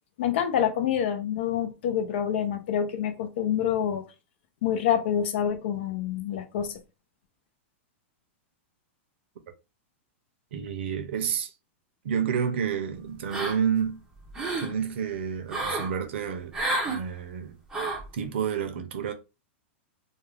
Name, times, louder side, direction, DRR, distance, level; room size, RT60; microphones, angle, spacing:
voice 1, 0.2-4.0 4.6-6.8, left 9 dB, 60° left, 0.6 m, -27 dB
voice 2, 10.5-11.5 12.0-14.0 14.6-16.6 16.9-17.6 18.1-19.1, right 7 dB, 65° right, 0.6 m, -29 dB
sound 1, 13.3-13.8 14.2-14.7 15.5-15.9 16.5-17.0 17.7-18.1, right 2 dB, 10° right, 0.6 m, -30 dB
2.4 x 2.3 x 3.2 m
supercardioid pair, 165°, 7 cm